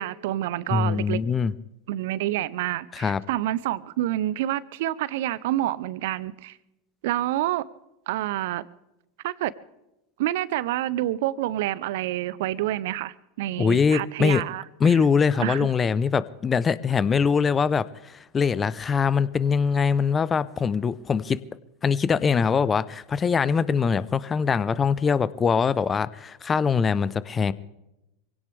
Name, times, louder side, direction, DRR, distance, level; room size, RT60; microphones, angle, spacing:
voice 1, 0.0-1.2 1.9-6.6 7.0-7.6 8.1-8.6 9.2-9.5 10.2-14.6 15.4-15.7, right 14 dB, 65° right, 0.7 m, -28 dB
voice 2, 0.7-1.5 2.9-3.2 13.6-14.4 14.8-21.4 21.8-27.5, left 6 dB, 25° left, 0.7 m, -23 dB
23.5 x 17.0 x 3.5 m
hypercardioid pair, 90°, 0 cm